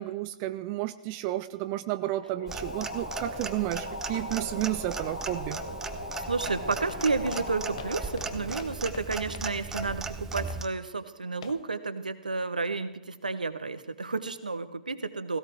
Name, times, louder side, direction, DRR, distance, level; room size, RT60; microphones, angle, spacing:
voice 1, 0.0-5.6, right 15 dB, 35° right, 11 dB, 0.6 m, -32 dB
sound 1, 2.2-9.6, left 1 dB, 75° left, 2.3 m, -39 dB
Clock, 2.5-10.7, right 4 dB, 10° right, 1.1 m, -38 dB
sound 2, 6.2-9.6 9.8-10.1 10.5-10.8 11.4-11.7, left 8 dB, 55° left, 1.1 m, -47 dB
voice 2, 6.2-15.4, right 4 dB, 80° right, 11 dB, 1.2 m, -31 dB
17.0 x 17.0 x 4.6 m, 0.97 s
figure-of-eight pair, 105°, 4 cm